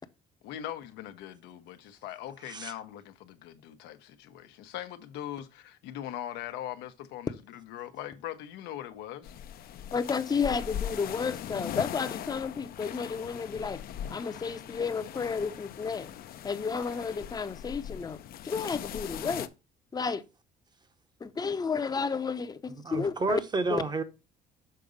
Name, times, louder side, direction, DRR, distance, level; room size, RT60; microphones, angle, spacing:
voice 1, 0.4-9.4, left 12 dB, 90° left, 0.8 m, -41 dB
sound 1, 9.2-19.5, left 10 dB, 60° left, 0.6 m, -40 dB
voice 2, 9.9-13.8 14.1-16.1 16.4-18.2 18.4-19.5 19.9-20.2 21.2-23.4 23.7-23.8, left 5 dB, 25° left, 0.7 m, -32 dB
voice 3, 22.8-24.0, right 3 dB, 25° right, 0.8 m, -30 dB
6.7 x 3.9 x 5.0 m
cardioid pair, 110°, 17 cm